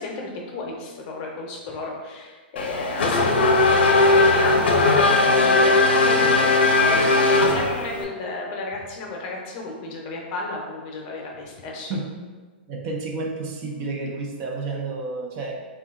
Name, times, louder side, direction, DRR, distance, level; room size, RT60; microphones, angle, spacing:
voice 1, 0.0-12.0, left 3 dB, 40° left, 0 dB, 0.7 m, -32 dB
Race car auto racing / Accelerating revving vroom, 2.6-8.0, left 2 dB, 85° left, 0.5 m, -18 dB
voice 2, 12.7-15.5, right 3 dB, 40° right, 0 dB, 0.5 m, -30 dB
2.7 x 2.3 x 3.5 m, 1.4 s
hypercardioid pair, 140°, 6 cm